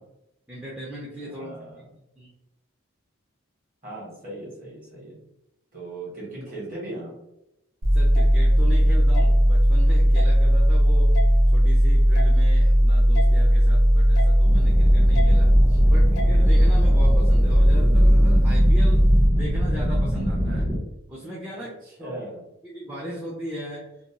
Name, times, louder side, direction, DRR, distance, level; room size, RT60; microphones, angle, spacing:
voice 1, 0.5-1.5 2.2-2.3 7.9-11.1 11.5-15.5 15.9-20.7 21.1-21.7 22.0-22.2 22.6-23.9, equal, 5° right, -5 dB, 0.3 m, -37 dB
voice 2, 1.2-1.8 3.8-5.1 5.7-7.1 15.4-16.0 21.5-22.5, right 1 dB, 40° right, -5 dB, 1.2 m, -39 dB
sound 1, 7.8-19.3, equal, 80° right, 0.8 m, -17 dB
sound 2, 8.1-8.3 9.1-9.3 10.1-10.3 11.1-11.3 12.1-12.3 13.1-13.3 14.1-14.3 15.1-15.3 16.2-16.3, equal, 60° left, 0.4 m, -31 dB
sound 3, 14.4-20.8, equal, 20° right, 0.7 m, -25 dB
2.6 x 2.1 x 2.8 m, 0.88 s
head